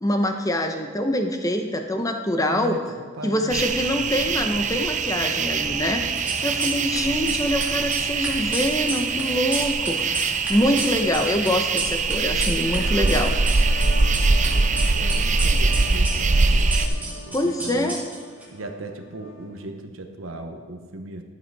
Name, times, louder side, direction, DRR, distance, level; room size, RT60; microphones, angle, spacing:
voice 1, 0.0-2.8 3.2-6.0 6.4-10.2 10.5-13.3 17.3-18.0, left 1 dB, 15° left, 5 dB, 0.9 m, -24 dB
voice 2, 2.5-4.3 6.5-7.2 14.0-18.0 18.5-21.2, right 2 dB, 70° right, 5 dB, 1.0 m, -38 dB
sound 1, 3.5-16.9, right 4 dB, 35° right, 0.5 m, -23 dB
sound 2, 6.0-7.0 7.2-12.8 13.0-14.5 14.8-18.4, right 2 dB, 5° right, 2.2 m, -32 dB
sound 3, 12.3-19.7, left 1 dB, 60° left, 1.0 m, -40 dB
12.0 x 8.1 x 4.8 m, 1.5 s
head